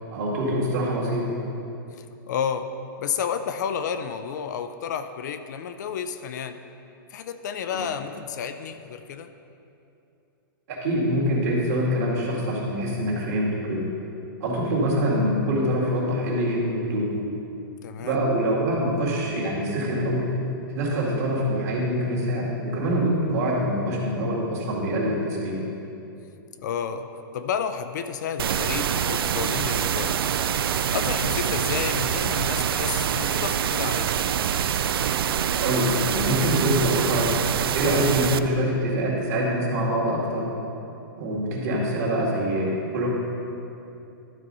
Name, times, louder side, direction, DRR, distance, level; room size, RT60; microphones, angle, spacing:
voice 1, 0.1-1.3 7.7-7.8 10.7-13.8 14.4-17.1 18.0-20.3 20.7-25.6 35.6-37.3 37.7-40.5 41.2-43.1, equal, 45° right, -4 dB, 2.1 m, -25 dB
voice 2, 2.0-2.7 3.0-6.6 7.1-9.3 17.8-18.2 26.6-30.3 30.6-34.2, left 7 dB, 55° left, 9 dB, 0.4 m, -31 dB
sound 1, 28.4-38.4, right 9 dB, 80° right, 0.4 m, -25 dB
12.0 x 4.2 x 5.4 m, 2.8 s
hypercardioid pair, 160°, 12 cm